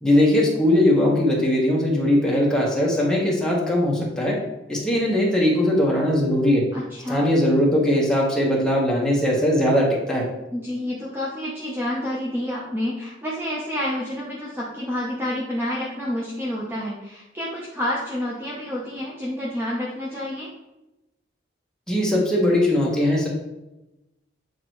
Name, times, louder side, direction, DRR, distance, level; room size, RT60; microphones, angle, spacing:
voice 1, 0.0-4.4 4.7-6.6 7.1-10.3 21.9-23.3, left 1 dB, 5° left, -3 dB, 1.3 m, -20 dB
voice 2, 6.7-7.3 10.5-20.5, left 1 dB, 10° right, -5 dB, 0.8 m, -29 dB
8.2 x 3.8 x 3.1 m, 0.96 s
head